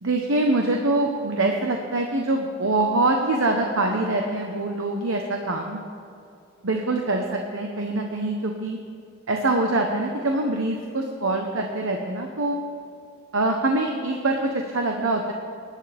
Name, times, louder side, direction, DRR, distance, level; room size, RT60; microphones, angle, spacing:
voice 1, 0.0-5.8 6.6-8.8 9.3-12.6 13.3-15.3, right 2 dB, 75° right, 2 dB, 1.0 m, -24 dB
19.5 x 10.5 x 3.5 m, 2.5 s
head